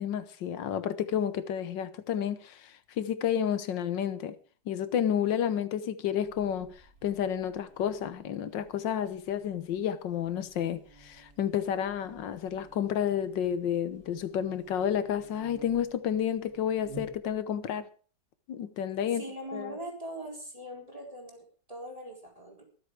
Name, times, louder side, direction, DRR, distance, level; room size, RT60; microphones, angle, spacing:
voice 1, 0.0-4.4 4.7-6.7 7.0-17.9 18.5-19.2 19.5-19.7, left 9 dB, 85° left, 1.7 m, -31 dB
Buzz, 6.2-17.6, right 3 dB, 70° right, 3.3 m, -54 dB
voice 2, 19.0-22.6, right 1 dB, 20° right, 4.4 m, -41 dB
23.5 x 7.9 x 4.8 m
omnidirectional pair, 1.9 m